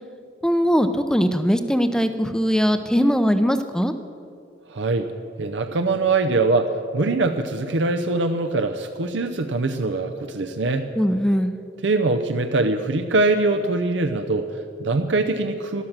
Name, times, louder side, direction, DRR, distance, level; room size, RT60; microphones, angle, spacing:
voice 1, 0.4-3.9 11.0-11.6, equal, 5° left, 9 dB, 0.6 m, -20 dB
voice 2, 4.7-5.1 5.4-10.9 11.8-15.8, right 3 dB, 70° right, 6 dB, 0.6 m, -23 dB
12.5 x 12.0 x 7.3 m, 2.6 s
head